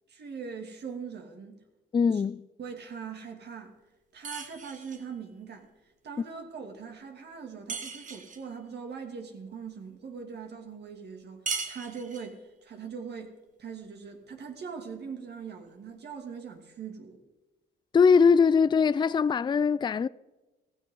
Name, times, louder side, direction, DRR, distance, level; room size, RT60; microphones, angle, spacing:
voice 1, 0.1-1.6 2.1-2.2 2.6-3.7 4.1-5.7 6.0-13.3 13.6-17.2, right 6 dB, 55° right, 2.6 m, -41 dB
voice 2, 1.9-2.4 17.9-20.1, left 5 dB, 25° left, 0.4 m, -21 dB
sound 1, 4.2-5.1 7.7-8.5 11.5-12.4, right 5 dB, 40° right, 1.9 m, -37 dB
15.5 x 15.5 x 3.9 m
cardioid pair, 90°, 20 cm